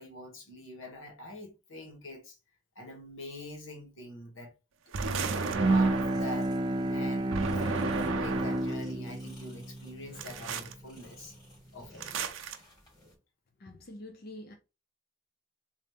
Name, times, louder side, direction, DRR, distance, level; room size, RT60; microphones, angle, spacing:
voice 1, 0.0-2.4 2.7-4.5 4.9-11.4 11.7-12.0, left 1 dB, 90° left, 1.4 m, -45 dB
sound 1, 4.9-6.4 7.3-8.8 10.2-10.7 12.0-12.6, right 4 dB, 85° right, 0.6 m, -34 dB
sound 2, 5.1-13.1, left 1 dB, 20° left, 2.0 m, -54 dB
Bowed string instrument, 5.5-11.0, right 2 dB, 25° right, 0.4 m, -31 dB
voice 2, 13.6-14.5, left 1 dB, 50° left, 0.6 m, -46 dB
4.0 x 2.6 x 3.5 m
head